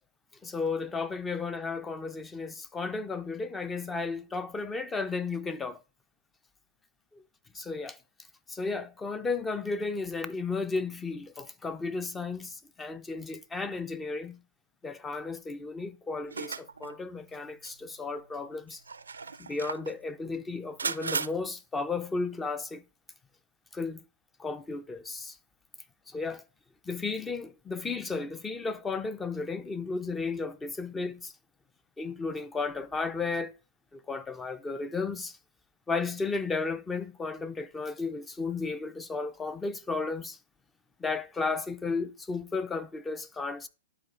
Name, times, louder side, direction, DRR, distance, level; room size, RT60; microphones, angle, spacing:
voice 1, 0.4-5.8 7.5-8.0 8.5-14.4 14.8-18.8 19.4-22.8 23.7-24.0 24.4-25.4 26.1-26.4 26.9-31.3 32.0-33.5 33.9-35.3 35.9-40.4 41.0-43.7, left 4 dB, 15° left, 0.5 m, -34 dB
sound 1, 16.3-16.9 17.7-17.8 18.7-19.9 20.8-21.3, right 5 dB, 85° right, 0.4 m, -35 dB
10.5 x 4.3 x 2.5 m
hypercardioid pair, 115°, 0 cm